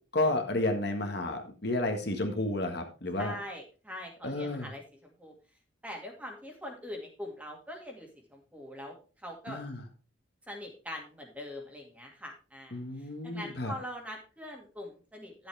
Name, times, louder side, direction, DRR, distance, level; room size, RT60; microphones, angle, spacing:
voice 1, 0.1-3.3 4.2-4.7 9.5-9.8 12.7-13.7, left 2 dB, 55° left, 3 dB, 1.7 m, -31 dB
voice 2, 3.2-5.3 5.8-9.6 10.5-15.5, left 1 dB, 5° right, 1 dB, 2.2 m, -43 dB
12.0 x 7.8 x 3.5 m, 0.34 s
head